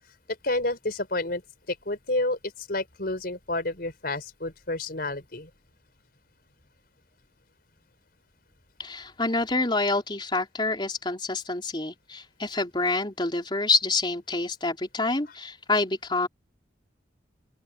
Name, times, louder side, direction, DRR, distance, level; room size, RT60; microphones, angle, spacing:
voice 1, 0.4-1.4 1.7-5.5, left 2 dB, 55° left, 5.3 m, -30 dB
voice 2, 8.8-16.3, left 3 dB, 25° left, 3.7 m, -27 dB
open air
head